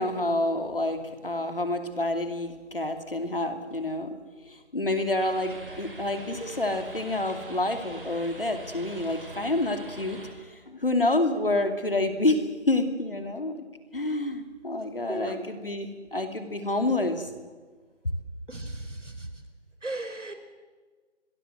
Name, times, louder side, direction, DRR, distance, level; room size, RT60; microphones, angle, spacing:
voice 1, 0.0-4.1 4.5-10.2 10.5-13.6 13.9-17.3 18.0-18.1, left 2 dB, 50° left, 8 dB, 2.8 m, -28 dB
sound 1, 5.2-10.3, right 1 dB, 45° right, 5.3 m, -44 dB
voice 2, 15.1-15.4 18.5-19.3 19.8-20.3, right 2 dB, 80° right, 8 dB, 4.8 m, -36 dB
25.5 x 21.5 x 7.9 m, 1.4 s
figure-of-eight pair, 180°, 36 cm